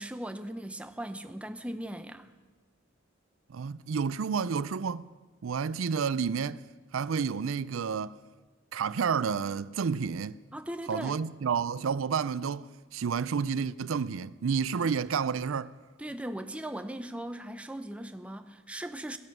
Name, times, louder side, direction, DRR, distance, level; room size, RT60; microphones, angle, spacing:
voice 1, 0.0-2.3 10.5-11.2 16.0-19.2, right 1 dB, 5° right, 0.7 m, -38 dB
voice 2, 3.5-5.1 5.4-6.6 6.9-8.2 8.7-10.4 10.9-15.8, right 6 dB, 85° right, 0.4 m, -30 dB
16.0 x 11.0 x 7.8 m
head